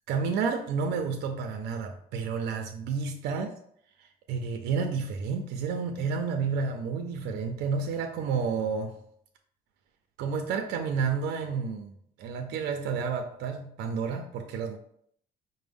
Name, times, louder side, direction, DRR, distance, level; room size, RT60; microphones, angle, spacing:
voice 1, 0.1-3.5 4.0-9.0 10.2-11.9 12.2-14.8, right 5 dB, 80° right, 5 dB, 0.4 m, -30 dB
5.0 x 2.0 x 3.4 m, 0.67 s
cardioid pair, 110°, 17 cm